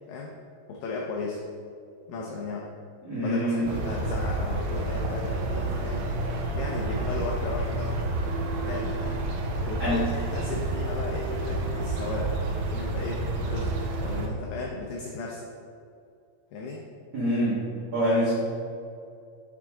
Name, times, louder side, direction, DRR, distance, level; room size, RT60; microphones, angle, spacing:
voice 1, 0.7-1.4 2.1-2.7 3.2-6.2 6.5-9.2 9.6-12.3 12.7-15.5 16.5-16.8, left 3 dB, 85° left, -1 dB, 2.0 m, -36 dB
voice 2, 3.0-3.6 9.8-10.0 17.1-17.6 17.9-18.3, equal, 55° right, -11 dB, 1.1 m, -25 dB
sound 1, 3.7-14.3, right 2 dB, 80° right, 2.2 m, -29 dB
7.2 x 5.9 x 3.7 m, 2.4 s
omnidirectional pair, 4.9 m